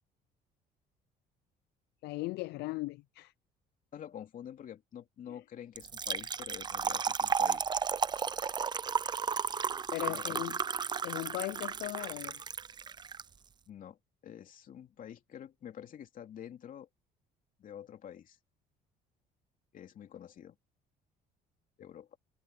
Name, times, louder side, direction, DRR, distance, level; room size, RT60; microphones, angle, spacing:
voice 1, 2.0-3.3 5.3-5.4 9.9-10.6 11.0-12.4, left 20 dB, 80° left, 0.5 m, -38 dB
voice 2, 3.9-7.7 10.0-10.5 13.7-14.0 14.2-16.9 17.6-18.4 19.7-20.5 21.8-22.2, left 9 dB, 55° left, 2.8 m, -47 dB
Trickle dribble / Fill (with liquid), 5.8-13.2, right 6 dB, 25° right, 0.5 m, -33 dB
open air
cardioid pair, 110°, 17 cm